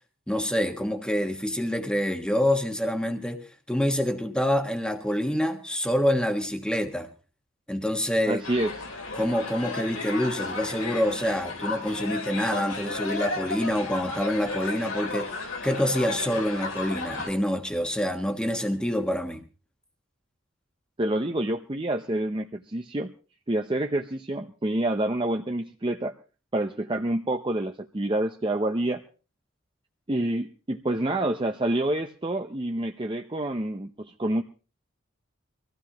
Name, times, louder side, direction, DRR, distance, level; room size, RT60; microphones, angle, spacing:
voice 1, 0.3-7.1 7.7-8.4 9.1-15.3 15.6-19.4, equal, 5° left, 1.4 m, -26 dB
voice 2, 8.3-8.7 21.0-23.1 23.5-26.1 26.5-29.0 30.1-34.4, right 1 dB, 25° right, 0.7 m, -27 dB
sound 1, 8.4-17.3, left 3 dB, 85° left, 3.5 m, -34 dB
23.5 x 15.5 x 2.9 m
head